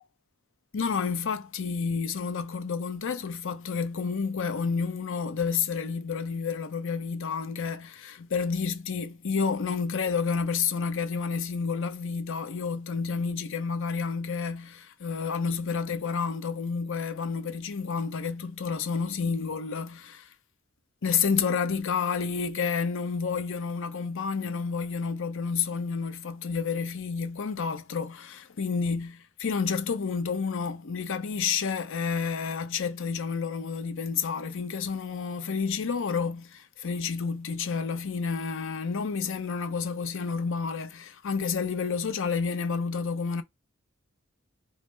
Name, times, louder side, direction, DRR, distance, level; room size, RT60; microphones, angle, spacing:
voice 1, 0.7-20.3 21.0-43.4, left 5 dB, 65° left, 0.6 m, -30 dB
5.2 x 2.0 x 3.2 m
head